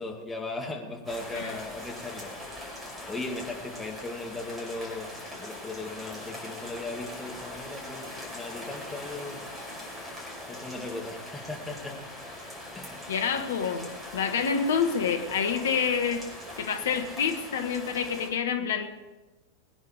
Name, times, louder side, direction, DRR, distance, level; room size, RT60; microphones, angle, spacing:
voice 1, 0.0-2.3 3.1-5.1 5.4-9.4 10.5-12.0 12.7-13.0, left 2 dB, 10° left, 0 dB, 2.5 m, -37 dB
sound 1, 1.1-18.3, left 1 dB, 10° right, 5.5 m, -41 dB
voice 2, 13.1-13.9 14.1-16.2 16.6-18.9, left 6 dB, 60° left, 6 dB, 1.5 m, -27 dB
21.5 x 10.0 x 5.1 m, 1.1 s
figure-of-eight pair, 90°, 0 cm